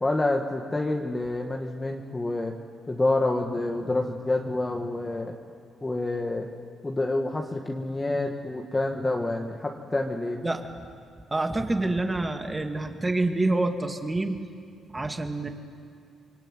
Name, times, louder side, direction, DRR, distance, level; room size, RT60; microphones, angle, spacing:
voice 1, 0.0-2.6 2.9-5.3 5.8-6.5 6.8-10.4, left 2 dB, 20° left, 1 dB, 2.0 m, -28 dB
voice 2, 11.3-14.4 14.9-15.5, right 2 dB, 20° right, 5 dB, 2.5 m, -27 dB
28.0 x 22.5 x 9.4 m, 2.3 s
cardioid pair, 90°, 0 cm